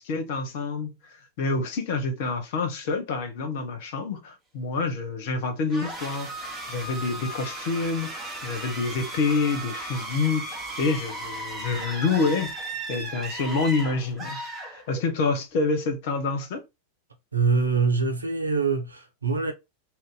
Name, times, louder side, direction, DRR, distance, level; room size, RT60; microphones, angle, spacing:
voice 1, 0.0-14.4 14.7-16.6, left 4 dB, 50° left, 0.8 m, -27 dB
sound 1, 5.7-15.3, right 2 dB, 15° right, 0.9 m, -36 dB
voice 2, 17.3-19.5, right 4 dB, 80° right, 0.7 m, -24 dB
2.6 x 2.1 x 3.8 m
figure-of-eight pair, 90°, 0 cm